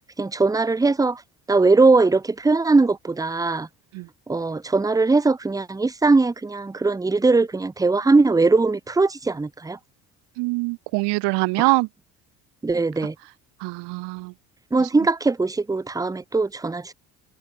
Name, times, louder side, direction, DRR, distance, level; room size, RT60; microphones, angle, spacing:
voice 1, 0.2-1.2 1.5-3.7 4.3-9.8 11.6-11.7 12.6-13.1 14.7-16.9, right 3 dB, 10° right, 0.7 m, -20 dB
voice 2, 10.4-11.9 13.6-14.3, right 26 dB, 60° right, 0.8 m, -23 dB
hypercardioid pair, 55°, 46 cm